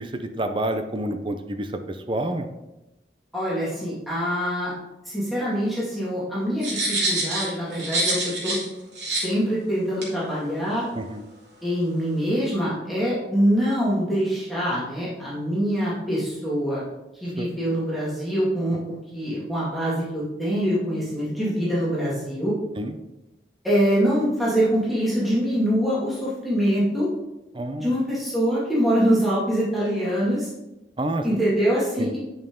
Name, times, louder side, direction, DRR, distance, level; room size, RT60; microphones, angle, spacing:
voice 1, 0.0-2.5 10.9-11.2 17.4-17.5 22.8-22.9 27.5-27.9 31.0-31.4 32.0-32.1, right 1 dB, 30° right, 7 dB, 0.5 m, -28 dB
voice 2, 3.3-4.7 5.1-8.6 9.2-10.9 11.6-16.8 17.2-22.5 23.6-27.1 27.8-30.5 31.2-32.2, equal, ahead, -9 dB, 2.1 m, -24 dB
sound 1, 6.6-8.6 8.9-9.3 10.0-10.1, right 2 dB, 90° right, 2.5 m, -26 dB
8.8 x 5.5 x 3.7 m, 0.99 s
head